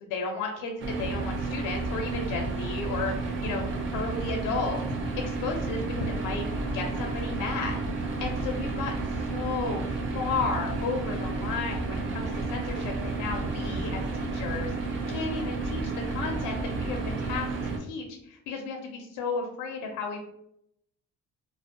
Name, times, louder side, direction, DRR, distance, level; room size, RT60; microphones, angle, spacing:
voice 1, 0.0-4.8 5.2-6.4 6.7-7.8 8.2-9.9 10.1-17.5 17.8-20.2, left 4 dB, 75° left, 2 dB, 0.5 m, -33 dB
sound 1, 0.8-17.8, right 3 dB, 40° right, 0.4 m, -31 dB
2.5 x 2.0 x 2.5 m, 0.77 s
cardioid pair, 155°, 32 cm